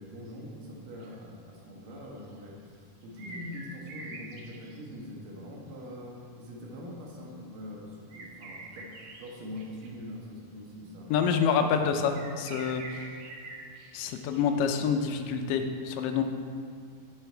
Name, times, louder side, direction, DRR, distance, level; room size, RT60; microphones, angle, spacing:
voice 1, 0.0-11.7, left 1 dB, 90° right, -2 dB, 3.1 m, -43 dB
sound 1, 0.9-1.1 2.2-2.3 3.0-4.8 8.1-9.9 12.1-14.7 15.1-15.3, right 2 dB, 65° right, 1.8 m, -45 dB
voice 2, 11.1-13.1 13.9-16.2, left 6 dB, 90° left, 6 dB, 2.4 m, -27 dB
10.5 x 6.8 x 4.5 m, 2.2 s
omnidirectional pair, 3.7 m